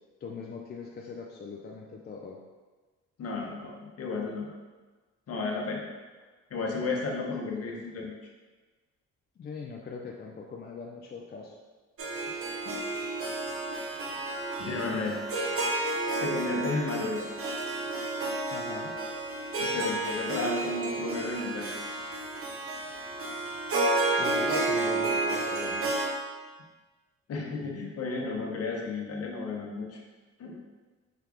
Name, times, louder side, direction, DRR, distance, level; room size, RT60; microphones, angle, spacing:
voice 1, 0.2-2.4 7.5-7.8 9.4-11.6 18.5-18.9 24.2-25.9, left 5 dB, 35° left, -1 dB, 0.4 m, -41 dB
voice 2, 3.2-4.5 5.3-5.8 6.5-8.1 12.6-12.8 14.6-15.2 16.2-17.3 19.5-21.7 27.3-30.0 30.4-30.6, left 3 dB, 55° left, -1 dB, 0.9 m, -33 dB
Harp, 12.0-26.1, right 2 dB, 45° right, 0.7 m, -31 dB
4.5 x 2.4 x 3.5 m, 1.3 s
cardioid pair, 90°, 30 cm